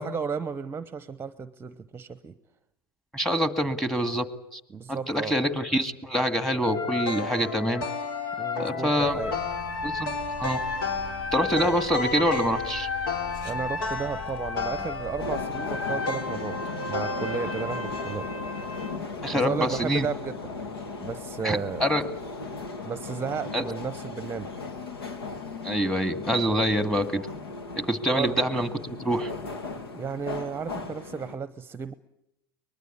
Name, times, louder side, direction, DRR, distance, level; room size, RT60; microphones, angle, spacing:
voice 1, 0.0-2.3 4.7-5.3 8.4-9.3 11.6-11.8 13.4-16.6 16.8-18.3 19.3-20.4 21.0-21.9 22.8-24.5 28.1-28.4 29.9-31.9, right 5 dB, 20° right, 14 dB, 0.9 m, -33 dB
voice 2, 3.1-4.3 4.5-4.6 4.9-7.8 8.6-9.2 9.8-10.1 10.4-10.6 11.3-12.9 19.2-20.1 21.4-22.0 23.5-23.6 25.6-27.2 27.7-29.3, equal, 5° left, 11 dB, 2.1 m, -25 dB
sound 1, 6.6-19.0, left 4 dB, 70° left, 3.2 m, -32 dB
sound 2, 9.0-15.4, left 2 dB, 50° left, 4.1 m, -43 dB
sound 3, 15.2-31.4, left 4 dB, 90° left, 2.5 m, -37 dB
23.5 x 20.5 x 8.5 m, 0.83 s
hypercardioid pair, 95°, 12 cm